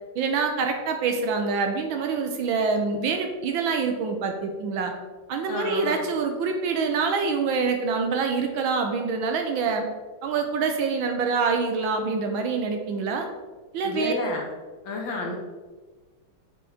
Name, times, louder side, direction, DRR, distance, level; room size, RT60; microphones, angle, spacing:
voice 1, 0.1-4.9 5.3-9.9 10.2-13.3 13.7-14.1, right 5 dB, 70° right, 4 dB, 1.4 m, -26 dB
voice 2, 5.5-6.0 13.8-14.4 14.9-15.4, left 2 dB, 65° left, 0 dB, 1.8 m, -30 dB
7.2 x 4.2 x 4.2 m, 1.3 s
omnidirectional pair, 2.4 m